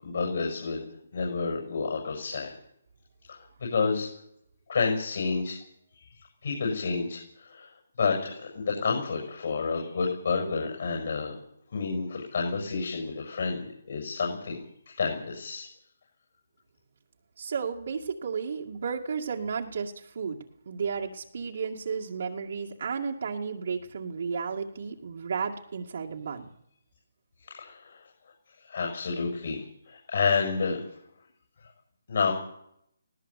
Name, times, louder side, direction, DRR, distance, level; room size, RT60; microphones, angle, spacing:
voice 1, 0.0-0.9 1.1-2.5 3.6-4.1 4.7-5.6 6.4-7.2 7.5-7.7 8.0-11.4 11.7-14.6 15.0-15.7 27.5-28.0 28.7-30.8 32.1-32.3, left 4 dB, 55° left, 0 dB, 6.9 m, -29 dB
voice 2, 17.4-20.4 20.7-26.5, right 5 dB, 55° right, -1 dB, 2.2 m, -33 dB
19.0 x 18.0 x 8.4 m, 0.73 s
hypercardioid pair, 170°, 0 cm